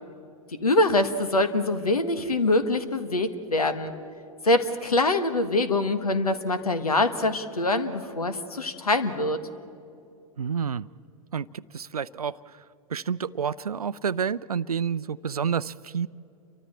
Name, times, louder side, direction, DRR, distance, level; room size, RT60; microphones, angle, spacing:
voice 1, 0.6-3.9 4.4-9.4, left 2 dB, 80° left, 10 dB, 1.6 m, -24 dB
voice 2, 10.4-10.9 11.3-12.6 12.9-16.1, right 7 dB, 80° right, 19 dB, 0.5 m, -29 dB
29.5 x 24.0 x 4.4 m, 2.7 s
figure-of-eight pair, 95°, 19 cm